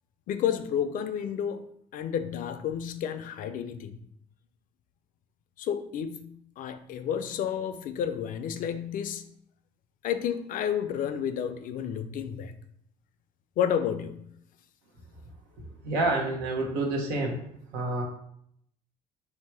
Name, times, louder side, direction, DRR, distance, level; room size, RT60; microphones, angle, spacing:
voice 1, 0.3-1.7 1.9-4.0 5.6-9.2 10.0-12.5 13.6-14.3, left 8 dB, 60° left, 10 dB, 0.5 m, -31 dB
voice 2, 15.8-17.4 17.7-18.0, right 2 dB, 85° right, 0 dB, 1.0 m, -28 dB
3.3 x 2.8 x 4.5 m, 0.71 s
supercardioid pair, 85°, 16 cm